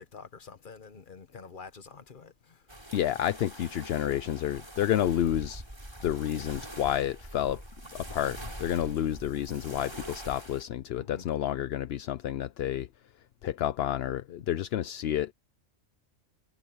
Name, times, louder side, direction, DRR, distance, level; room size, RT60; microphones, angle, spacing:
voice 1, 0.0-2.6 11.0-11.3, left 5 dB, 40° left, 1.3 m, -47 dB
sound 1, 2.7-10.6, right 1 dB, 20° right, 4.7 m, -44 dB
voice 2, 2.9-5.6 6.0-7.6 7.9-12.9 13.4-15.3, left 11 dB, 60° left, 0.7 m, -30 dB
omnidirectional pair, 1.3 m